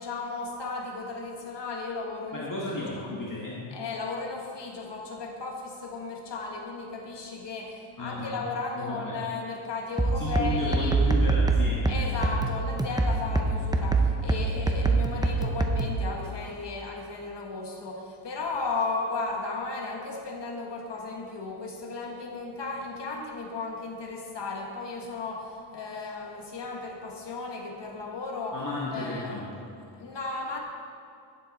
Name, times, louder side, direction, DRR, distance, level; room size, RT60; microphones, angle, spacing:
voice 1, 0.0-2.5 3.7-10.9 11.9-28.6 28.9-29.3 29.9-30.6, left 3 dB, 60° left, 1 dB, 1.5 m, -35 dB
voice 2, 2.3-3.7 8.0-8.5 8.7-9.2 10.1-12.4 28.5-29.6, left 2 dB, 40° left, -5 dB, 1.4 m, -34 dB
sound 1, 10.0-16.0, right 3 dB, 10° right, 0.5 m, -25 dB
11.5 x 9.3 x 4.1 m, 2.6 s
wide cardioid pair, 150°, 49 cm